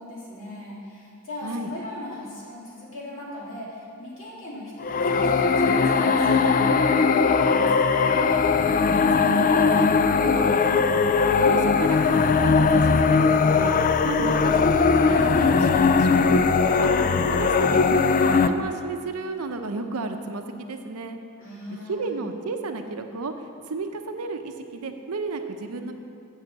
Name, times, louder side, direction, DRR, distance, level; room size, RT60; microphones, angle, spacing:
voice 1, 0.0-8.0 14.1-14.5 16.8-17.8 21.4-22.2, left 1 dB, 65° left, -5 dB, 2.7 m, -38 dB
sound 1, 4.8-18.5, left 5 dB, 40° left, 0.4 m, -20 dB
voice 2, 8.9-11.0 11.3-13.7 14.0-16.4 17.0-21.2 21.9-23.3 23.7-25.9, right 3 dB, 80° right, 6 dB, 0.8 m, -32 dB
7.3 x 7.2 x 7.7 m, 2.4 s
head